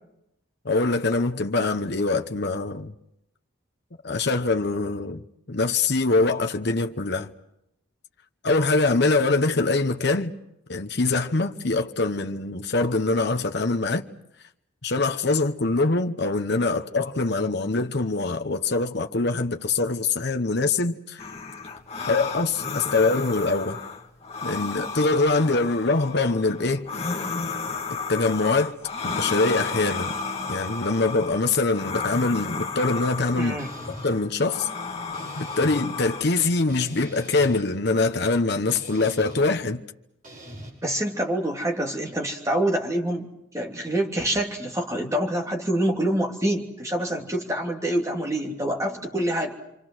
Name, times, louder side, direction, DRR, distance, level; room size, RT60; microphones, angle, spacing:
voice 1, 0.6-2.9 4.0-5.2 5.5-7.3 8.4-10.3 10.7-14.0 14.8-21.3 22.1-23.8 24.4-26.9 28.1-28.7 29.0-30.1 30.5-33.6 33.9-34.7 35.4-39.8, left 3 dB, 50° left, 1.0 m, -23 dB
sound 1, 21.2-36.2, left 4 dB, 30° left, 1.9 m, -33 dB
voice 2, 33.3-33.7 40.8-43.3 43.5-49.5, right 1 dB, 15° right, 2.9 m, -26 dB
sound 2, 33.6-34.1 35.1-35.8 36.7-37.6 38.7-39.4 40.2-40.7, right 1 dB, 40° right, 6.9 m, -41 dB
28.5 x 25.0 x 6.3 m
head